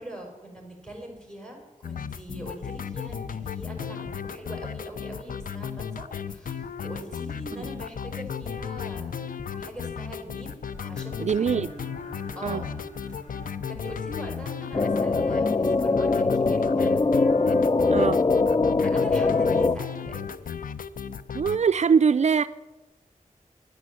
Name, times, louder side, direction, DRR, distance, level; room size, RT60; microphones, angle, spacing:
voice 1, 0.0-9.2 9.5-11.7 12.4-12.8 13.4-17.0 18.8-20.4, right 1 dB, 5° left, 1 dB, 5.5 m, -42 dB
sound 1, 1.8-21.6, left 7 dB, 80° left, 0.5 m, -35 dB
sound 2, 10.6-14.5, left 1 dB, 55° left, 4.3 m, -46 dB
voice 2, 11.2-11.7 12.4-12.6 17.9-18.2 21.3-22.5, right 6 dB, 55° right, 12 dB, 0.4 m, -22 dB
sound 3, 14.7-19.8, left 3 dB, 30° left, 0.4 m, -22 dB
11.0 x 9.8 x 7.7 m, 1.1 s
cardioid pair, 45°, 14 cm